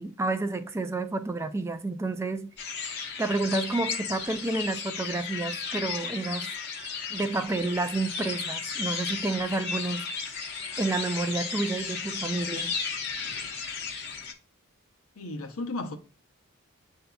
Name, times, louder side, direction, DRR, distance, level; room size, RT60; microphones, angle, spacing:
voice 1, 0.0-2.5 3.2-6.5 7.1-10.0 10.8-12.8, right 2 dB, 10° right, 0.3 m, -30 dB
sound 1, 2.6-14.3, left 5 dB, 50° left, 0.7 m, -34 dB
voice 2, 15.2-15.9, left 2 dB, 80° left, 0.8 m, -34 dB
7.7 x 2.7 x 2.3 m
head